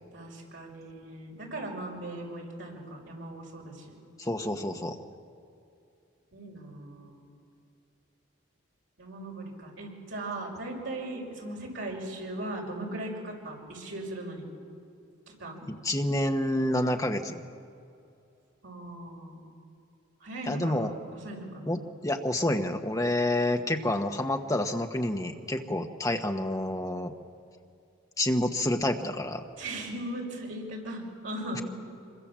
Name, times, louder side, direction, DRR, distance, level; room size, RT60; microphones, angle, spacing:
voice 1, 0.1-3.9 6.3-7.2 9.0-14.5 15.4-15.7 18.6-19.4 20.2-21.8 29.6-31.6, right 1 dB, 65° right, -1 dB, 5.9 m, -38 dB
voice 2, 4.2-5.0 15.6-17.4 20.4-20.9 21.7-27.1 28.2-29.4 31.5-31.6, left 1 dB, 15° left, 4 dB, 1.1 m, -28 dB
25.5 x 23.0 x 7.5 m, 2.6 s
head